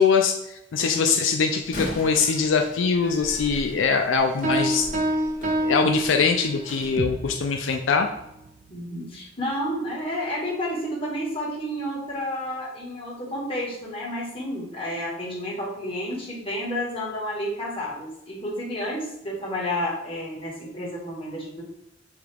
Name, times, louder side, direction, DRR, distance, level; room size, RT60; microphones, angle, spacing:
voice 1, 0.0-4.9 5.6-8.1, left 5 dB, 80° left, 4 dB, 0.4 m, -22 dB
voice 2, 0.8-1.1 8.7-21.6, equal, 30° left, -4 dB, 1.5 m, -31 dB
Slam, 1.6-7.0, left 1 dB, 50° left, 1.1 m, -39 dB
sound 1, 4.4-6.8, right 1 dB, 40° right, 0.8 m, -26 dB
sound 2, 7.0-10.9, right 4 dB, 65° right, 0.4 m, -40 dB
6.4 x 2.4 x 3.4 m, 0.84 s
head